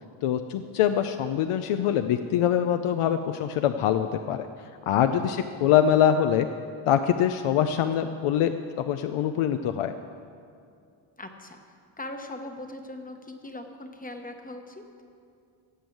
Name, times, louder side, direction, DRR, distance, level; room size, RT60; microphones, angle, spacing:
voice 1, 0.2-4.5 4.9-6.5 6.9-9.9, left 9 dB, 85° left, 8 dB, 0.7 m, -24 dB
voice 2, 11.2-11.6 12.0-14.8, left 1 dB, 15° left, 5 dB, 1.0 m, -40 dB
16.5 x 7.1 x 7.8 m, 2.3 s
wide cardioid pair, 155°, 50 cm